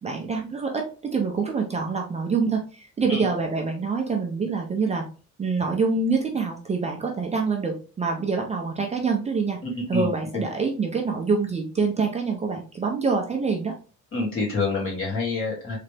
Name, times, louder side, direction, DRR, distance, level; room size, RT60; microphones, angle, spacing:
voice 1, 0.0-5.0 5.4-9.6 9.9-13.7, right 4 dB, 20° right, 1 dB, 0.5 m, -26 dB
voice 2, 9.6-10.4 14.1-15.8, left 3 dB, 45° left, -4 dB, 2.3 m, -27 dB
3.9 x 3.3 x 3.3 m, 0.36 s
cardioid pair, 170°, 31 cm